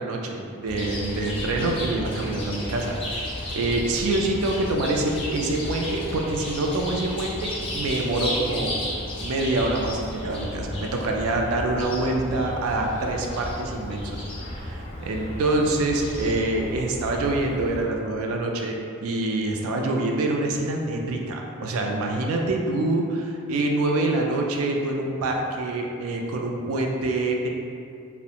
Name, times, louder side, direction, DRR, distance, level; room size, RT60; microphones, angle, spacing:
voice 1, 0.0-8.8 9.2-27.5, right 2 dB, 80° right, 1 dB, 0.3 m, -26 dB
Chirp tweet, 0.7-17.8, left 1 dB, 25° left, 0.3 m, -33 dB
2.4 x 2.0 x 2.8 m, 2.4 s
head